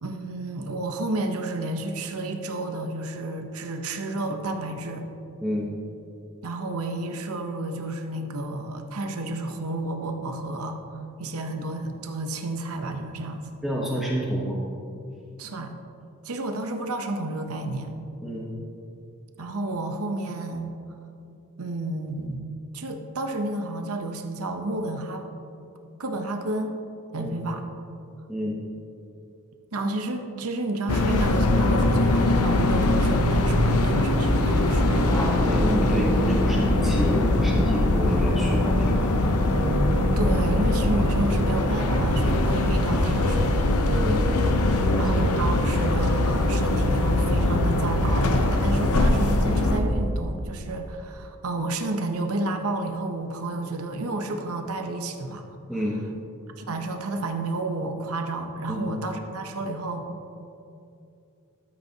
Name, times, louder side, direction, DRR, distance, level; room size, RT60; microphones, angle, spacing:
voice 1, 0.0-5.1 6.4-10.8 11.2-13.5 15.4-15.7 16.2-17.9 19.4-20.7 21.6-22.4 22.7-25.3 26.0-26.7 27.1-27.7 29.7-35.1 40.2-43.7 45.0-55.5 56.6-60.1, right 2 dB, 75° right, 5 dB, 0.8 m, -31 dB
voice 2, 13.6-14.6 18.2-18.5 27.2-27.3 28.3-28.6 35.4-39.2 44.0-44.2 44.8-45.1 55.7-56.0 58.7-58.9, equal, ahead, -4 dB, 0.9 m, -29 dB
sound 1, 30.9-49.8, left 1 dB, 80° left, 0.7 m, -22 dB
Thunder, 35.0-42.0, left 1 dB, 15° left, 1.5 m, -34 dB
12.5 x 8.0 x 2.8 m, 2.6 s
head